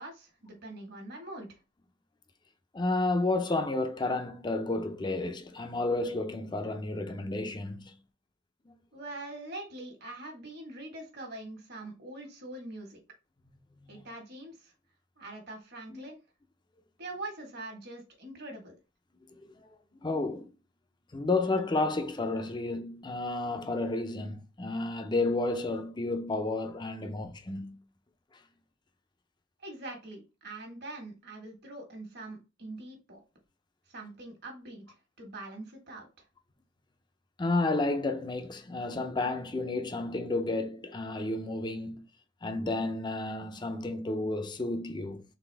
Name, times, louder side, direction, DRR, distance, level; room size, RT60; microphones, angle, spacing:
voice 1, 0.0-1.6 8.9-13.0 13.9-14.7 15.2-16.2 17.0-18.7 29.6-33.2 33.9-36.3, right 2 dB, 60° right, 1.6 m, -43 dB
voice 2, 2.7-8.0 15.9-16.0 19.4-19.5 20.0-20.5 21.1-27.8 37.4-42.0 42.4-45.2, left 2 dB, 25° left, 0.6 m, -31 dB
4.1 x 3.4 x 3.4 m
head